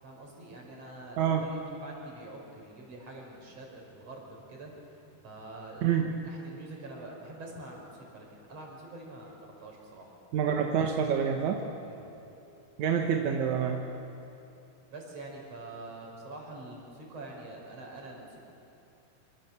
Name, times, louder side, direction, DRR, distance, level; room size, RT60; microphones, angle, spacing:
voice 1, 0.0-10.2 11.8-12.1 14.9-18.4, right 2 dB, 40° right, -1 dB, 6.1 m, -46 dB
voice 2, 5.8-6.2 10.3-11.6 12.8-13.9, right 7 dB, 60° right, 2 dB, 2.2 m, -27 dB
27.0 x 25.5 x 7.4 m, 2.9 s
omnidirectional pair, 4.5 m